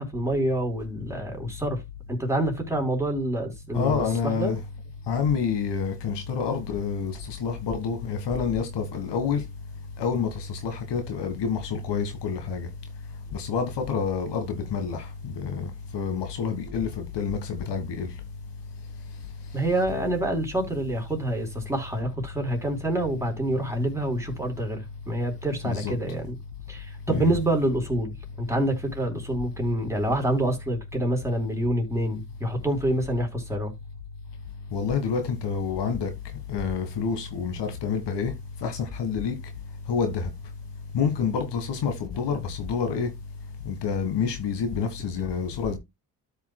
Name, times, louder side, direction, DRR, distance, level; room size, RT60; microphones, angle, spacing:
voice 1, 0.0-1.8 2.1-4.5 19.5-26.3 26.7-33.7, right 1 dB, 5° right, 4.0 m, -27 dB
voice 2, 3.7-4.6 5.1-9.4 10.0-12.7 13.3-18.1 25.6-25.9 27.1-27.4 34.7-36.1 36.5-38.3 38.6-39.3 39.9-40.3 40.9-43.1 43.7-45.8, left 6 dB, 70° left, 1.8 m, -28 dB
13.0 x 5.7 x 2.3 m
supercardioid pair, 60°, 43 cm